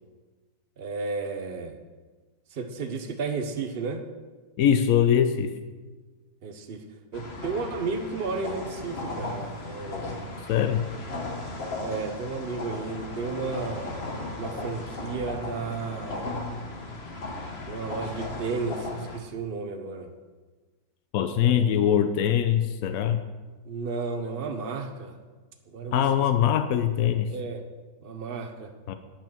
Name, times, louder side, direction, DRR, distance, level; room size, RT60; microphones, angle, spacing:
voice 1, 0.8-1.8 2.5-4.0 6.4-6.8 7.1-10.3 11.8-14.0 14.3-16.3 17.6-20.1 21.3-21.8 23.7-25.2 25.7-26.1 27.3-27.6 28.0-28.7, right 4 dB, 75° right, 6 dB, 0.5 m, -33 dB
voice 2, 4.6-5.5 10.5-10.8 21.1-23.2 25.9-27.3 28.9-29.0, left 9 dB, 75° left, 9 dB, 0.8 m, -22 dB
sound 1, 7.1-19.2, left 2 dB, 35° left, 1.2 m, -36 dB
10.0 x 9.0 x 6.0 m, 1.3 s
omnidirectional pair, 2.1 m